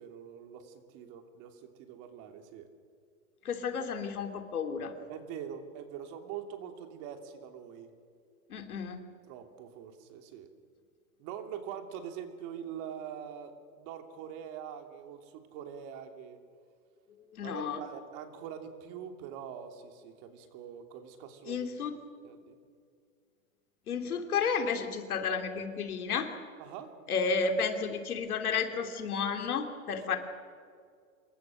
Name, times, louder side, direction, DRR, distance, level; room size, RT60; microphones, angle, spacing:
voice 1, 0.0-2.7 5.1-7.9 9.3-10.5 11.2-13.5 13.8-16.4 17.4-21.7 22.2-22.6 26.6-26.9 30.0-30.2, right 8 dB, 45° right, 5 dB, 3.1 m, -44 dB
voice 2, 3.4-4.9 8.5-9.0 17.3-17.8 21.5-21.9 23.9-26.3 27.1-30.2, left 5 dB, 90° left, 6 dB, 3.1 m, -32 dB
26.5 x 22.0 x 6.5 m, 2.2 s
hypercardioid pair, 125°, 43 cm